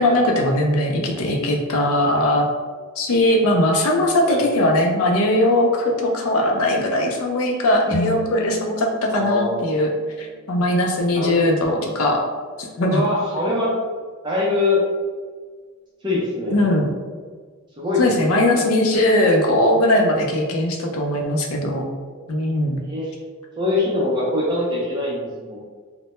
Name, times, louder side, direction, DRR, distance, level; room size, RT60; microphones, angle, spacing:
voice 1, 0.0-2.4 3.0-9.9 10.2-12.2 12.6-13.1 16.5-16.9 18.0-21.8 22.3-22.8, left 1 dB, 70° left, 1 dB, 0.4 m, -19 dB
sound 1, 7.9-11.9, left 2 dB, ahead, 0.9 m, -33 dB
voice 2, 9.1-9.6 11.1-11.5 12.8-13.7 14.2-14.8 16.0-16.6 17.8-18.4 22.8-23.1 23.6-25.7, left 2 dB, 20° right, -7 dB, 0.5 m, -23 dB
2.1 x 2.1 x 2.9 m, 1.5 s
head